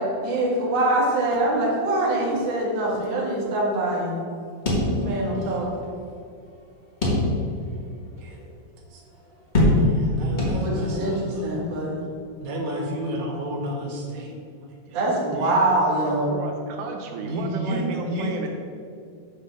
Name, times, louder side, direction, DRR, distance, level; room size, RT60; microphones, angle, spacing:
voice 1, 0.0-4.2 5.0-5.7 10.6-12.0 14.9-16.3, right 1 dB, 45° right, -4 dB, 1.8 m, -24 dB
sound 1, 4.6-5.5 5.8-5.9 7.0-7.7 8.2-8.3 9.5-10.1 10.4-11.0, left 1 dB, 85° left, 0.4 m, -21 dB
voice 2, 9.6-11.5 12.4-14.3 14.9-15.5 17.2-18.4, right 1 dB, 65° right, -1 dB, 2.2 m, -31 dB
voice 3, 16.0-18.5, right 4 dB, 85° right, 2 dB, 2.3 m, -33 dB
8.4 x 3.7 x 6.5 m, 2.4 s
omnidirectional pair, 3.7 m